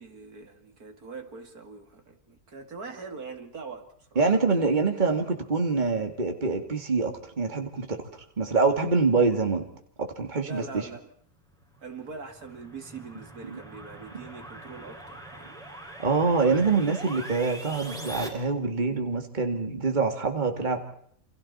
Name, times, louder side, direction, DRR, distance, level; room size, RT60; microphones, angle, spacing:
voice 1, 0.0-4.4 10.4-11.1 11.8-15.6, right 4 dB, 80° right, 5 dB, 3.0 m, -42 dB
voice 2, 4.2-9.6 10.0-10.9 13.5-13.6 16.0-20.8, right 4 dB, 30° right, 4 dB, 2.4 m, -25 dB
sound 1, 11.8-18.3, right 1 dB, ahead, 6.1 m, -42 dB
28.5 x 28.0 x 4.3 m, 0.65 s
omnidirectional pair, 1.6 m